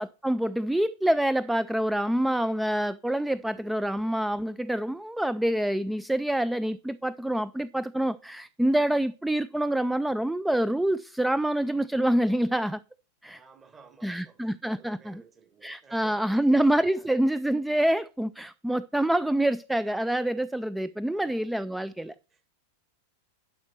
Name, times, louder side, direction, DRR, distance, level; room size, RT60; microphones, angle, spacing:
voice 1, 0.0-12.8 13.2-13.4 14.0-15.2 15.6-22.1, right 1 dB, 5° right, 0.3 m, -26 dB
voice 2, 13.3-17.1 21.1-21.4 22.1-22.4, right 5 dB, 20° right, 1.4 m, -55 dB
11.5 x 5.0 x 4.3 m
figure-of-eight pair, 90°, 0 cm